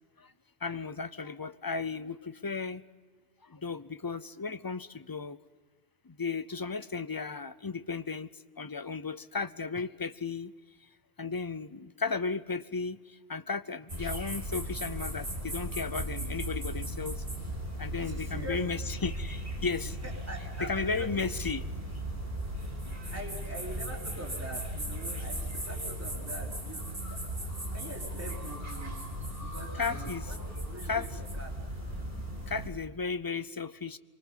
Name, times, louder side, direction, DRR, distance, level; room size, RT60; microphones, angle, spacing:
voice 1, 0.6-2.8 3.4-5.4 6.0-8.3 8.6-10.5 11.2-17.2 17.8-20.0 20.6-21.6 22.9-23.0 29.8-30.2 30.9-31.1 32.5-34.0, left 4 dB, 25° left, 13 dB, 0.5 m, -35 dB
sound 1, 13.9-32.7, right 1 dB, 60° right, 5.0 m, -37 dB
voice 2, 18.0-18.8 19.9-21.1 23.1-26.8 27.1-27.2 27.7-29.0 29.4-31.5, right 1 dB, 15° right, -1 dB, 3.7 m, -44 dB
25.5 x 24.5 x 5.6 m, 1.5 s
omnidirectional pair, 1.1 m